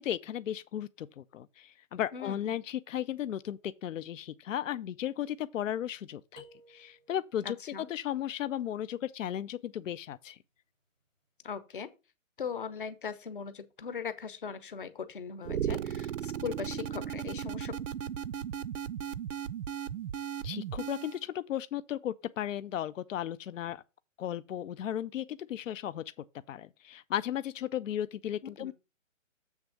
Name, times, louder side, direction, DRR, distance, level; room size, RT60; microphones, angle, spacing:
voice 1, 0.0-7.6 7.9-10.4 20.4-23.8 24.2-26.0 26.5-28.7, left 11 dB, 75° left, 0.5 m, -35 dB
sound 1, 6.4-7.5, left 1 dB, ahead, 0.7 m, -55 dB
voice 2, 7.4-7.9 11.4-11.9 12.4-17.7 28.6-28.7, left 6 dB, 40° left, 0.8 m, -39 dB
sound 2, 15.4-21.2, right 9 dB, 70° right, 0.6 m, -36 dB
7.3 x 3.5 x 6.3 m
hypercardioid pair, 170°, 39 cm